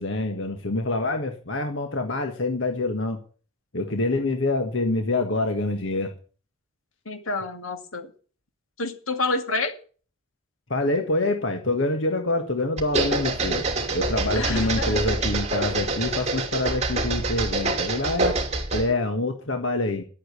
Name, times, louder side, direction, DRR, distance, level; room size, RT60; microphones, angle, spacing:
voice 1, 0.0-3.2 3.7-6.1 10.7-13.7 13.9-18.4 18.7-20.0, left 2 dB, 70° left, 5 dB, 1.6 m, -26 dB
voice 2, 7.1-8.1 8.8-9.7 14.3-15.0, left 3 dB, 90° left, 6 dB, 2.3 m, -28 dB
sound 1, 12.8-18.9, right 2 dB, 35° right, 2.7 m, -26 dB
11.5 x 8.4 x 8.3 m, 0.40 s
head